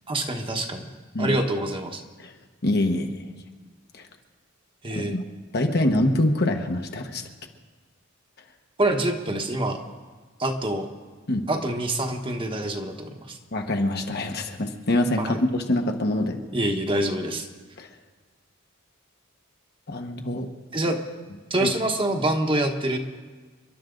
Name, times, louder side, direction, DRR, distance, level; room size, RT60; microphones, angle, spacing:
voice 1, 0.1-0.8 1.2-2.0 4.8-5.1 8.8-9.8 10.4-10.9 11.5-13.4 15.2-15.4 16.5-17.5 20.7-21.0 21.5-23.0, right 1 dB, 25° right, 4 dB, 1.3 m, -26 dB
voice 2, 2.6-3.2 4.9-5.2 5.5-7.2 11.3-11.5 13.5-16.4 17.8-17.9 19.9-20.5 21.6-21.7, left 1 dB, 50° left, 4 dB, 1.4 m, -24 dB
29.0 x 11.5 x 3.9 m, 1.4 s
head